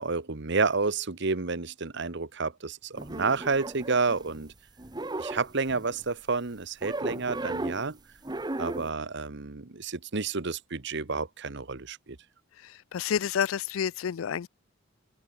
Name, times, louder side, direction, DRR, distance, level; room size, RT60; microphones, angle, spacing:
voice 1, 0.0-4.5 5.2-8.0 8.6-12.2, right 4 dB, 60° right, 1.2 m, -30 dB
sound 1, 3.0-4.5 4.8-6.1 6.8-7.9 8.2-8.9, right 2 dB, 20° right, 1.0 m, -36 dB
voice 2, 12.6-14.5, left 8 dB, 90° left, 0.4 m, -29 dB
head